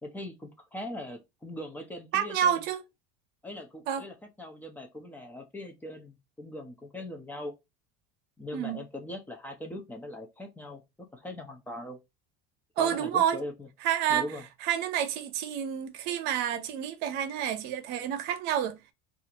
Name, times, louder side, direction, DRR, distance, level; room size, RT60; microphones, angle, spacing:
voice 1, 0.0-2.6 3.4-7.5 8.4-10.8 11.1-12.0 12.8-13.7 14.1-14.4, left 1 dB, 10° left, 0.6 m, -40 dB
voice 2, 2.1-2.8 3.9-4.0 8.5-8.8 12.8-13.4 13.8-14.2 14.6-18.8, right 9 dB, 55° right, 0.7 m, -29 dB
2.7 x 2.5 x 4.2 m
cardioid pair, 145°, 20 cm